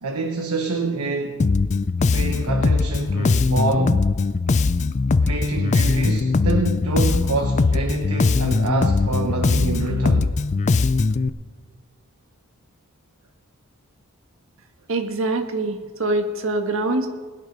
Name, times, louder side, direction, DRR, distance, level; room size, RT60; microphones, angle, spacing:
voice 1, 0.0-1.4 2.1-4.1 5.2-10.3, right 3 dB, 85° right, 4 dB, 1.0 m, -26 dB
Bass guitar, 1.4-11.3, left 3 dB, 30° left, 0.3 m, -20 dB
voice 2, 14.9-17.1, right 2 dB, 60° right, 5 dB, 1.4 m, -24 dB
21.0 x 8.2 x 5.3 m, 1.4 s
head